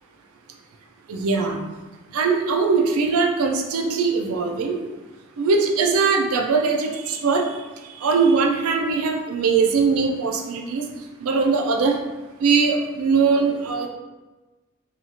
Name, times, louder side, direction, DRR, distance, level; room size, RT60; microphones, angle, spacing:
voice 1, 1.1-1.6 2.1-4.8 5.4-7.5 8.0-10.9 11.2-12.0 12.4-13.9, right 4 dB, 85° right, 2 dB, 0.4 m, -21 dB
2.8 x 2.3 x 2.8 m, 1.2 s
head